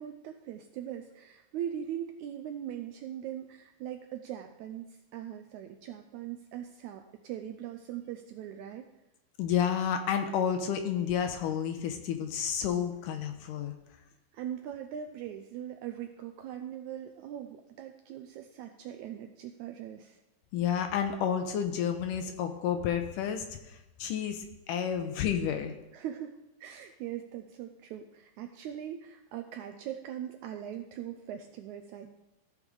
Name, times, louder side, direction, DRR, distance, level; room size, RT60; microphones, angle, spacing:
voice 1, 0.0-8.9 14.3-20.2 25.9-32.1, right 10 dB, 85° right, 6 dB, 1.7 m, -41 dB
voice 2, 9.4-13.7 20.5-25.7, left 8 dB, 80° left, 6 dB, 2.2 m, -30 dB
15.0 x 5.3 x 4.8 m, 0.96 s
omnidirectional pair, 4.0 m